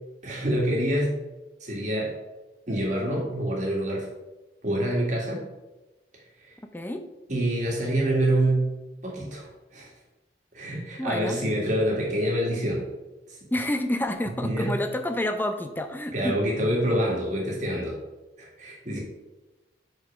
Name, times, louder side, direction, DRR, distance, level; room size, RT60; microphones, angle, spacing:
voice 1, 0.2-1.2 1.6-2.1 2.7-4.1 4.6-5.4 6.4-6.6 7.3-8.7 9.0-9.9 10.5-12.9 13.3-13.4 14.4-14.7 16.1-18.0 18.4-19.0, right 1 dB, 40° right, -3 dB, 1.9 m, -26 dB
voice 2, 11.0-11.4 13.5-16.4, left 1 dB, 10° left, 7 dB, 0.5 m, -28 dB
6.0 x 5.2 x 4.9 m, 1.1 s
head